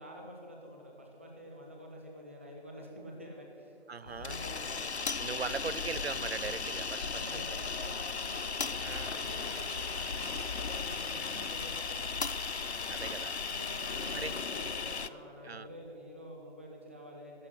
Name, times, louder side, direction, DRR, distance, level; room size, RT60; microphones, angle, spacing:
voice 1, 0.0-4.9 7.0-12.1 13.4-17.5, equal, 10° right, 0 dB, 0.8 m, -48 dB
voice 2, 3.9-4.4 5.2-7.4 8.8-9.1 11.3-11.5 12.9-13.4 14.1-14.3 15.4-15.7, right 5 dB, 70° right, 16 dB, 0.5 m, -39 dB
sound 1, 4.1-15.1, left 5 dB, 80° left, 0.7 m, -36 dB
sound 2, 8.1-15.1, left 2 dB, 35° left, 0.4 m, -52 dB
15.5 x 6.1 x 9.8 m, 2.7 s
figure-of-eight pair, 160°, 33 cm